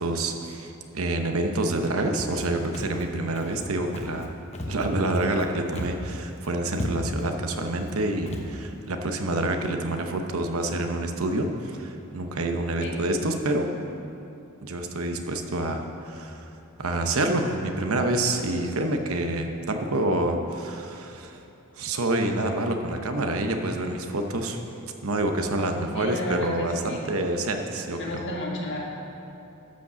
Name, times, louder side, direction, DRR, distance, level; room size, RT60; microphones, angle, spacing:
voice 1, 0.0-4.3 4.7-13.7 14.6-16.5 16.8-21.4 21.7-24.6 25.0-28.0, right 2 dB, 80° right, 5 dB, 0.9 m, -27 dB
Walk footsteps, 2.1-2.5 2.7-3.0 3.3-3.6 3.9-4.3 4.5-5.4 5.7-6.1 6.4-6.5 6.7-7.3 7.8-7.9 8.3-8.5, left 1 dB, 30° left, 0.9 m, -35 dB
voice 2, 25.9-27.0 28.0-28.8, left 1 dB, 55° left, -2 dB, 1.7 m, -32 dB
12.5 x 5.3 x 6.9 m, 2.8 s
head